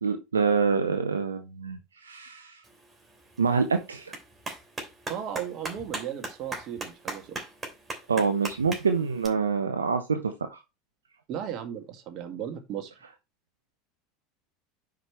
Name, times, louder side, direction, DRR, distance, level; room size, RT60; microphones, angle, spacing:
voice 1, 0.0-2.6 3.4-4.1 8.1-10.6, right 5 dB, 80° right, 0.9 m, -26 dB
Clapping, 2.6-9.3, right 2 dB, 20° right, 3.2 m, -40 dB
voice 2, 5.1-7.4 11.3-12.9, right 9 dB, 45° right, 2.0 m, -36 dB
10.0 x 5.2 x 3.1 m
figure-of-eight pair, 75°, 0 cm